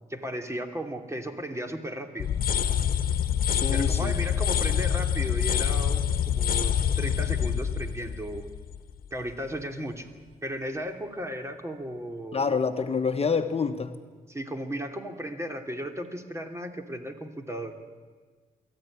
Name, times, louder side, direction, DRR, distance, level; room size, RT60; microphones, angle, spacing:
voice 1, 0.1-2.3 3.7-8.5 9.1-10.1 10.4-12.6 14.3-17.7, equal, 20° right, 5 dB, 2.8 m, -35 dB
sound 1, 2.2-9.1, left 8 dB, 70° left, 1.2 m, -26 dB
voice 2, 3.5-4.2 12.3-14.0, left 5 dB, 40° left, 7 dB, 1.3 m, -27 dB
23.0 x 14.0 x 9.9 m, 1.5 s
cardioid pair, 65°, 15 cm